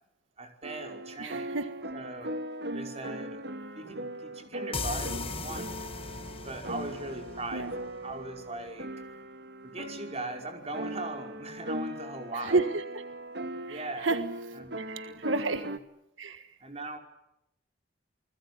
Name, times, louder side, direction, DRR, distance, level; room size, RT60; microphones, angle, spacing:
voice 1, 0.4-1.6 1.9-2.4 2.7-3.4 3.8-5.7 6.4-8.9 9.6-12.6 13.7-14.1 14.6-14.8 15.2-15.7 16.6-17.0, right 2 dB, 35° right, 5 dB, 5.3 m, -39 dB
sound 1, 0.6-15.8, right 1 dB, 60° right, 2.0 m, -39 dB
voice 2, 1.2-1.7 7.5-7.7 12.4-13.0 13.7-14.2 14.8-15.7 16.2-16.6, right 3 dB, 85° right, 11 dB, 1.6 m, -31 dB
sound 2, 4.7-8.2, left 4 dB, 30° left, 1.7 m, -38 dB
29.0 x 20.5 x 9.8 m, 0.81 s
head